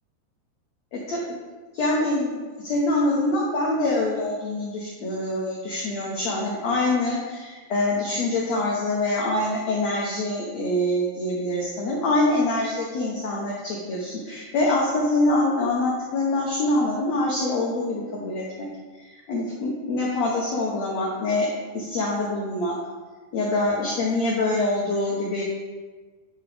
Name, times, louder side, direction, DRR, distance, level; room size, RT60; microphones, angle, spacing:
voice 1, 0.9-1.2 1.7-18.7 18.9-21.5 21.7-22.8 23.3-25.4, left 2 dB, 90° left, -4 dB, 1.5 m, -25 dB
10.0 x 6.0 x 3.5 m, 1.4 s
omnidirectional pair, 4.8 m